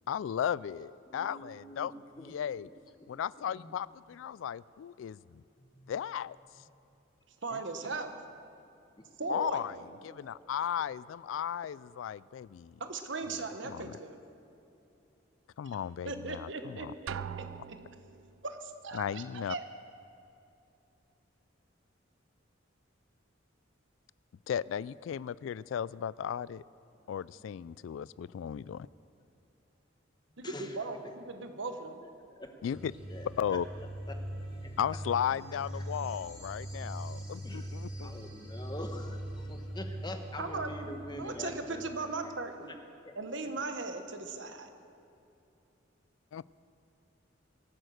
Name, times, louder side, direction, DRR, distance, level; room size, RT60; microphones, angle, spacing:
voice 1, 0.1-1.9 2.2-2.7 3.1-5.4 5.9-6.4 7.5-7.6 9.3-9.8 10.0-12.7 13.6-14.0 15.6-16.9 18.9-19.5 24.5-26.6 27.1-28.9 32.6-32.9 33.4-33.6 34.8-38.1 46.3-46.5, left 8 dB, 80° left, 21 dB, 0.3 m, -35 dB
voice 2, 1.1-1.9 2.2-2.3 3.0-3.1 3.5-3.8 5.6-5.9 7.8-8.0 9.0-9.1 9.7-10.5 30.4-30.8 32.0-32.8 33.1-33.6 34.1-34.2 34.6-34.7 37.4-37.7 38.0-41.8 42.2-42.3 43.0-43.1, left 1 dB, 20° left, 5 dB, 1.1 m, -45 dB
voice 3, 7.4-8.1 9.2-9.6 12.8-14.2 15.6-15.8 16.0-17.5 18.4-19.6 30.4-32.0 40.4-40.7 41.2-42.7 43.2-44.7, right 3 dB, 70° right, 7 dB, 1.3 m, -38 dB
Drum, 17.1-18.3, right 8 dB, 90° right, 0.3 m, -41 dB
sound 1, 32.7-41.8, right 1 dB, 5° right, 4.5 m, -41 dB
23.0 x 9.1 x 6.5 m, 2.8 s
head